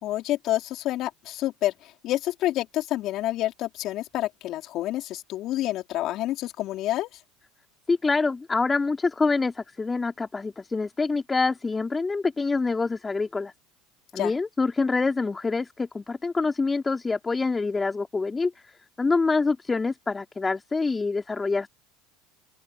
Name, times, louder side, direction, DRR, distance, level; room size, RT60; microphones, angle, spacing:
voice 1, 0.0-7.1 14.2-14.3, left 14 dB, 55° left, 4.1 m, -28 dB
voice 2, 7.9-13.5 14.1-21.7, left 4 dB, 20° left, 4.1 m, -26 dB
open air
hypercardioid pair, 90°, 0 cm